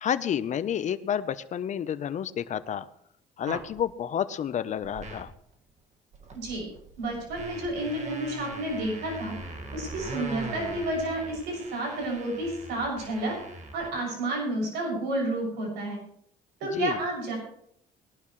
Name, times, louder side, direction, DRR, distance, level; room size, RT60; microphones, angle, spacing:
voice 1, 0.0-2.9 3.4-5.3 16.6-17.0, left 9 dB, 45° left, 13 dB, 0.8 m, -30 dB
sound 1, 3.4-3.8 4.8-5.3 5.8-5.9 6.1-13.9, right 2 dB, 45° right, 1.9 m, -41 dB
voice 2, 6.3-6.7 7.0-9.3 9.7-13.3 13.7-16.0 16.6-17.4, right 1 dB, 85° right, -1 dB, 6.7 m, -30 dB
21.0 x 11.5 x 3.2 m, 0.68 s
cardioid pair, 110°, 17 cm